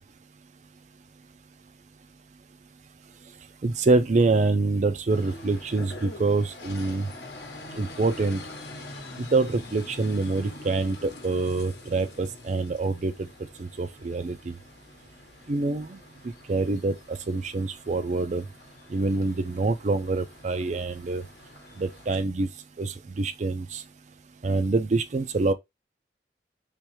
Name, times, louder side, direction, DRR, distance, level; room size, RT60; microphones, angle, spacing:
voice 1, 3.6-7.1 7.7-8.4 9.2-13.1 13.6-14.5 15.5-16.0 16.5-18.4 18.9-21.2 21.8-22.5 22.8-23.8 24.4-25.5, right 3 dB, 40° right, 0.4 m, -26 dB
sound 1, 5.1-22.2, left 2 dB, 70° left, 1.0 m, -45 dB
3.5 x 3.1 x 3.1 m
head